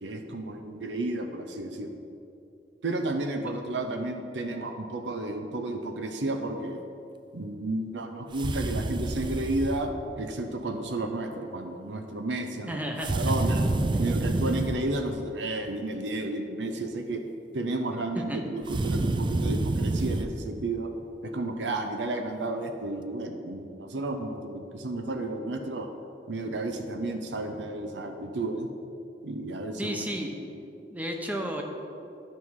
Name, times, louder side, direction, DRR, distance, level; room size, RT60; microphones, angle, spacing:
voice 1, 0.0-2.0 2.8-6.9 7.3-13.6 14.0-17.2 17.5-20.9 21.2-25.9 26.3-28.7 29.2-30.0, right 2 dB, 85° right, 5 dB, 0.7 m, -32 dB
sound 1, 8.3-9.8 13.0-14.8 18.6-20.3, right 2 dB, 25° right, 0.4 m, -28 dB
voice 2, 12.7-13.1 14.1-14.2 18.2-18.4 29.8-30.3 30.9-31.6, equal, 10° right, 2 dB, 0.9 m, -32 dB
12.0 x 5.5 x 4.7 m, 2.7 s
head